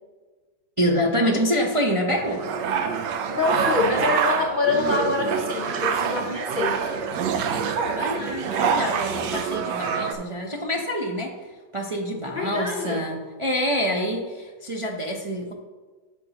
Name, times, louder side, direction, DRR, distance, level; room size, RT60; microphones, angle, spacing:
voice 1, 0.8-2.4 7.8-11.3 11.7-15.5, equal, 45° right, -1 dB, 0.4 m, -26 dB
sound 1, 2.1-10.1, right 6 dB, 80° right, 1.3 m, -26 dB
voice 2, 3.3-6.8 12.3-13.0, left 3 dB, 60° left, 1 dB, 0.5 m, -25 dB
11.0 x 6.9 x 2.9 m, 1.3 s
omnidirectional pair, 1.9 m